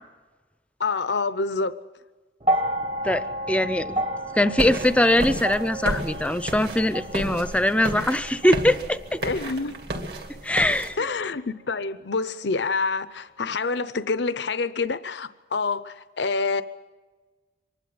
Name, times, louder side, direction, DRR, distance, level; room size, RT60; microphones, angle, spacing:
voice 1, 0.8-1.8 9.2-9.8 11.0-16.6, left 4 dB, 70° left, 0.7 m, -27 dB
sound 1, 2.4-10.7 11.8-11.9, right 1 dB, 35° right, 1.3 m, -32 dB
voice 2, 3.0-4.0 4.3-9.2 10.4-11.0, left 1 dB, 5° left, 0.6 m, -22 dB
sound 2, 4.6-10.9, right 1 dB, 55° right, 2.7 m, -32 dB
25.0 x 12.0 x 9.4 m
head